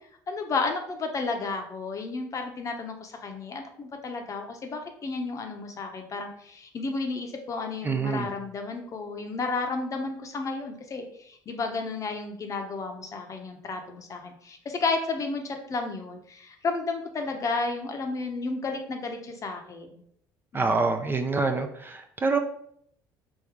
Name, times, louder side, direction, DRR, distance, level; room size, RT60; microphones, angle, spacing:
voice 1, 0.3-20.0 20.5-20.7, left 3 dB, 40° left, 4 dB, 0.8 m, -32 dB
voice 2, 7.8-8.3 20.5-22.4, right 4 dB, 25° right, 6 dB, 0.5 m, -26 dB
3.6 x 2.7 x 4.6 m, 0.67 s
supercardioid pair, 95°, 9 cm